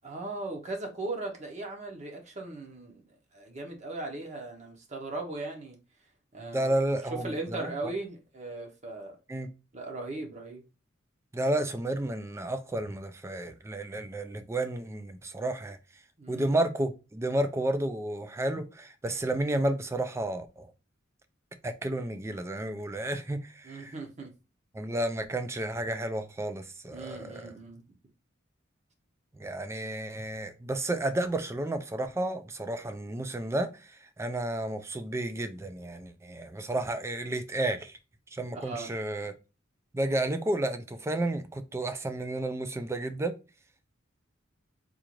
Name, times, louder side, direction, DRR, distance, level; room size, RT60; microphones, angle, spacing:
voice 1, 0.0-3.0 3.3-5.8 6.3-9.2 9.7-10.6 16.2-16.5 23.6-24.3 26.9-27.8 38.5-38.9, right 2 dB, 35° right, 0.8 m, -38 dB
voice 2, 6.5-7.7 9.3-9.5 11.3-15.8 16.3-20.7 21.6-23.9 24.7-27.5 29.3-38.0 38.3-39.3 39.9-43.3, right 1 dB, 15° right, 0.3 m, -31 dB
3.7 x 2.4 x 2.9 m
head